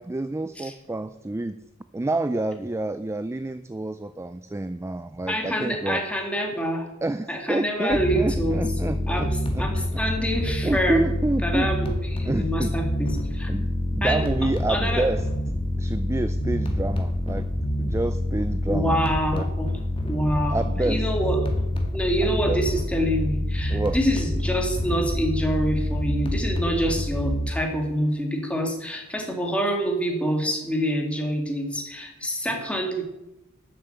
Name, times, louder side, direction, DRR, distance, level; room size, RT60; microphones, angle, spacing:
voice 1, 0.0-1.6 1.9-6.0 7.0-9.7 9.9-10.0 10.6-11.7 12.2-12.7 13.5-15.2 15.8-17.5 17.8-19.0 19.3-19.5 20.5-21.1 22.2-22.6 23.7-24.0, right 2 dB, 15° right, 11 dB, 0.4 m, -28 dB
voice 2, 5.3-6.9 7.3-11.0 11.4-13.5 14.0-14.3 14.7-15.0 18.7-19.7 20.0-21.4 21.9-33.0, equal, 5° left, 2 dB, 2.5 m, -26 dB
sound 1, 7.9-27.5, left 1 dB, 25° left, 2.0 m, -27 dB
11.0 x 7.6 x 8.2 m, 0.94 s
head